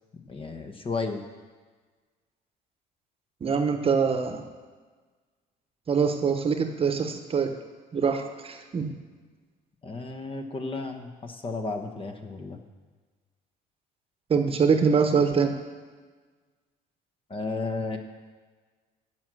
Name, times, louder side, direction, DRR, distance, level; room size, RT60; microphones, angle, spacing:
voice 1, 0.3-1.2 9.8-12.6 17.3-18.0, left 3 dB, 30° left, 5 dB, 1.1 m, -33 dB
voice 2, 3.4-4.4 5.9-7.6 7.9-8.9 14.3-15.5, right 5 dB, 35° right, 6 dB, 1.0 m, -24 dB
10.5 x 6.2 x 7.6 m, 1.4 s
cardioid pair, 110°, 17 cm